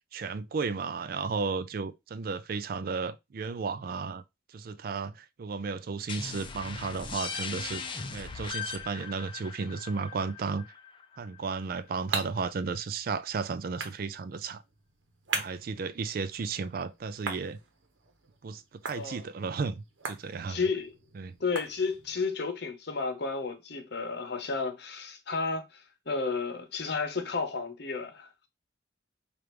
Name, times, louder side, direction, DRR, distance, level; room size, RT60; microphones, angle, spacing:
voice 1, 0.1-4.2 4.5-7.9 8.1-10.7 11.2-14.6 15.3-17.6 18.4-20.6 21.2-21.3, right 4 dB, 50° right, 0.4 m, -34 dB
sound 1, 6.1-11.5, left 5 dB, 25° left, 0.5 m, -39 dB
sound 2, 11.4-22.3, right 5 dB, 85° right, 0.9 m, -42 dB
voice 2, 19.0-19.3 20.5-20.9 21.4-28.5, left 4 dB, 60° left, 0.8 m, -32 dB
5.0 x 2.5 x 3.0 m
head